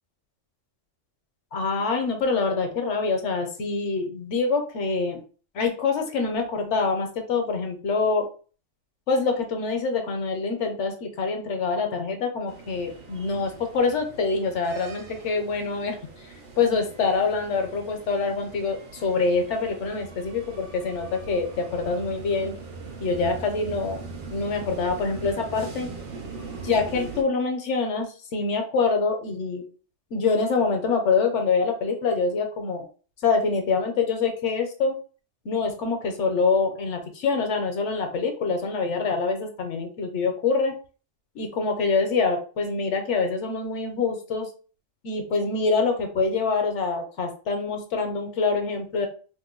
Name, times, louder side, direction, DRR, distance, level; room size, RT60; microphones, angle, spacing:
voice 1, 1.5-5.2 5.5-8.3 9.1-16.0 16.6-22.5 23.0-24.0 24.3-25.9 26.6-29.6 30.1-32.8 33.2-35.0 35.4-40.7 41.3-44.5 45.0-49.1, left 4 dB, 70° left, 5 dB, 0.9 m, -25 dB
sound 1, 12.5-27.2, right 4 dB, 50° right, 0.7 m, -41 dB
2.7 x 2.1 x 3.7 m, 0.38 s
omnidirectional pair, 1.3 m